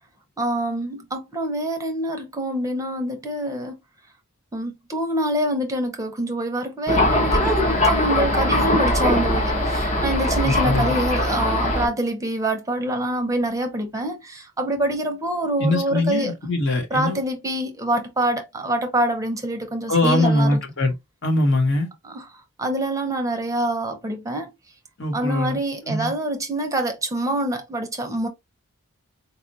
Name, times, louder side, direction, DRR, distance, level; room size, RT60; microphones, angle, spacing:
voice 1, 0.4-3.8 4.5-16.3 16.9-20.6 22.0-22.3 22.6-24.5 25.1-28.3, right 1 dB, 15° right, 0.7 m, -25 dB
Thunder, 6.9-11.9, left 1 dB, 35° left, 0.8 m, -21 dB
voice 2, 10.4-10.9 15.6-17.2 19.9-20.9 21.2-21.9 25.0-25.6 25.8-26.1, left 2 dB, 60° left, 1.2 m, -21 dB
4.2 x 2.4 x 2.7 m
head